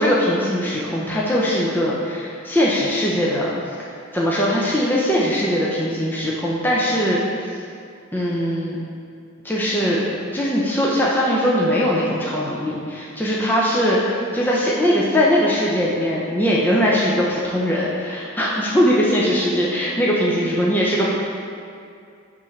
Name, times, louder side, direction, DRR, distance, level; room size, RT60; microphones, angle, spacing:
voice 1, 0.0-3.5 4.1-7.6 8.1-8.8 9.4-10.0 10.3-21.1, equal, 10° left, -5 dB, 0.5 m, -20 dB
6.0 x 3.2 x 5.7 m, 2.4 s
head